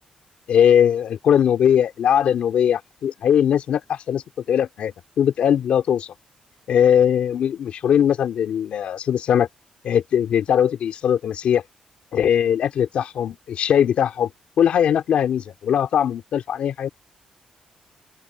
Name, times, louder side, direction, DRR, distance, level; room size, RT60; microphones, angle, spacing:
voice 1, 0.5-4.2 4.5-6.1 6.7-9.5 9.8-11.6 12.1-14.3 14.6-16.9, left 9 dB, 60° left, 3.5 m, -20 dB
open air
wide cardioid pair, 175°, 2 cm